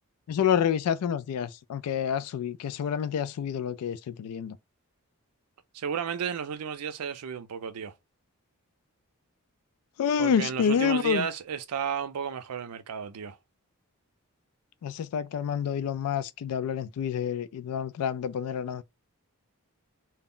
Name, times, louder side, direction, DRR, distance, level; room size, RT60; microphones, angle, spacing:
voice 1, 0.3-4.6 10.0-11.3 14.8-18.8, left 7 dB, 85° left, 0.3 m, -28 dB
voice 2, 5.7-7.9 10.2-13.4, right 7 dB, 90° right, 0.4 m, -33 dB
2.2 x 2.0 x 3.6 m
head